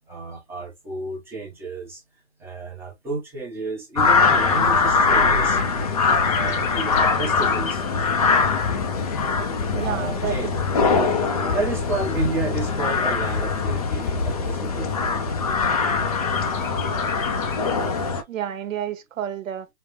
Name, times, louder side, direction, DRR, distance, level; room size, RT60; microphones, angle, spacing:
voice 1, 0.0-2.0 2.4-5.6 6.0-7.8 9.7-10.6 11.5-14.9, right 3 dB, 5° right, 0.7 m, -31 dB
sound 1, 4.0-18.2, left 4 dB, 30° left, 0.4 m, -22 dB
Bird, 4.5-18.2, left 4 dB, 80° left, 0.8 m, -33 dB
voice 2, 9.7-10.5 18.3-19.7, right 10 dB, 75° right, 0.9 m, -30 dB
5.4 x 2.0 x 2.9 m
hypercardioid pair, 155°, 40 cm